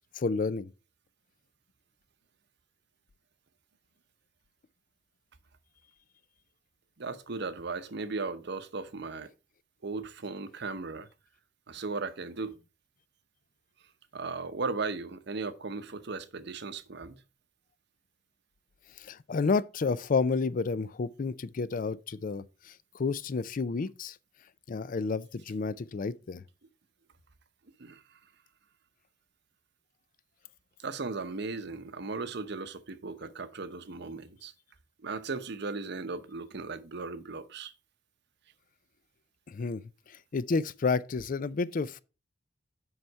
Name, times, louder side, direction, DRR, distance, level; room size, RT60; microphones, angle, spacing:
voice 1, 0.1-0.7 19.0-24.2 24.7-26.4 39.5-42.0, left 4 dB, 45° left, 0.4 m, -31 dB
voice 2, 7.0-9.3 9.8-11.1 11.7-12.6 14.1-17.2 27.8-28.2 30.8-34.5 35.0-37.7, right 4 dB, 65° right, 0.8 m, -37 dB
7.9 x 5.7 x 4.6 m
head